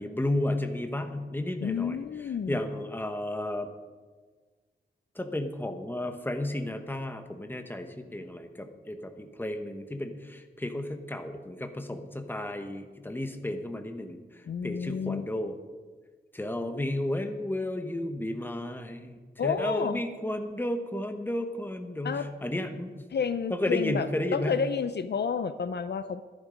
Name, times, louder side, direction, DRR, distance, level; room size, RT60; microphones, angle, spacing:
voice 1, 0.0-2.0 2.5-3.7 5.1-14.2 14.6-15.5 16.3-23.0 23.5-24.5, left 1 dB, 10° left, 6 dB, 1.1 m, -33 dB
voice 2, 1.6-2.6 14.5-15.3 19.4-20.0 22.0-22.3 23.1-26.2, left 6 dB, 65° left, 12 dB, 0.5 m, -30 dB
12.5 x 11.0 x 5.2 m, 1.4 s
wide cardioid pair, 100°, 18 cm